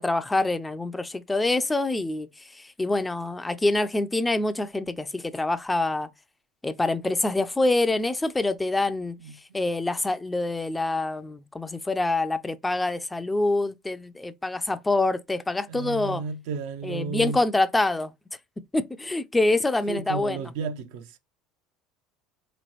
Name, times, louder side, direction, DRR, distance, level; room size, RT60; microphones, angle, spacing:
voice 1, 0.0-6.1 6.6-9.2 9.5-16.2 16.8-18.1 18.7-20.4, left 2 dB, 15° left, 0.4 m, -26 dB
voice 2, 15.7-17.4 19.9-21.2, right 5 dB, 70° right, 0.6 m, -33 dB
3.7 x 3.1 x 3.0 m
hypercardioid pair, 70°, 0 cm